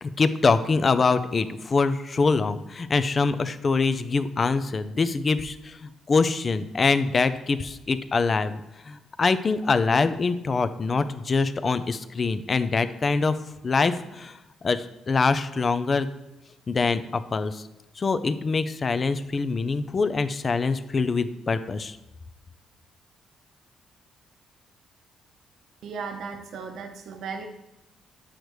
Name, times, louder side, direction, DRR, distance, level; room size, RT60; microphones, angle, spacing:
voice 1, 0.0-8.6 8.9-13.4 13.6-14.4 14.6-16.1 16.7-17.6 18.0-22.0, left 4 dB, 35° left, 11 dB, 0.5 m, -24 dB
voice 2, 25.8-27.5, right 5 dB, 70° right, 5 dB, 0.8 m, -36 dB
8.6 x 6.5 x 3.2 m, 0.97 s
cardioid pair, 90°, 0 cm